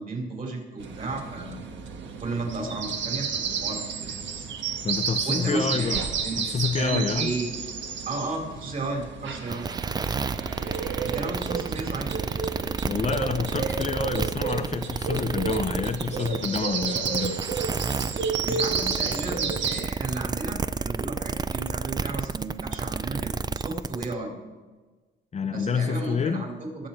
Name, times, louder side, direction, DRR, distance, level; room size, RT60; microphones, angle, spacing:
voice 1, 0.0-1.6 2.2-4.4 5.3-5.9 6.2-7.6 8.1-9.6 11.0-12.2 18.4-24.3 25.4-26.9, right 2 dB, 45° right, 0 dB, 3.8 m, -33 dB
sound 1, 0.8-19.8, right 5 dB, 70° right, 1.3 m, -31 dB
voice 2, 4.8-6.0 6.4-7.3 12.8-17.4 25.3-26.5, left 5 dB, 35° left, 9 dB, 0.6 m, -28 dB
sound 2, 9.5-24.1, right 5 dB, 20° right, 0.4 m, -30 dB
19.0 x 7.3 x 4.4 m, 1.3 s
cardioid pair, 90°, 20 cm